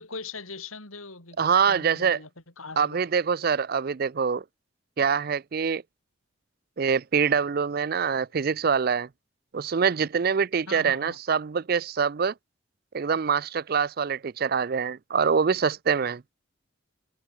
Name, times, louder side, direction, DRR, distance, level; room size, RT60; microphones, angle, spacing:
voice 1, 0.0-2.3 2.6-3.1 10.7-11.2, left 4 dB, 85° left, 5.2 m, -40 dB
voice 2, 1.4-2.2 2.8-4.4 5.0-5.8 6.8-9.1 9.5-12.3 12.9-16.2, right 6 dB, 45° right, 0.4 m, -24 dB
head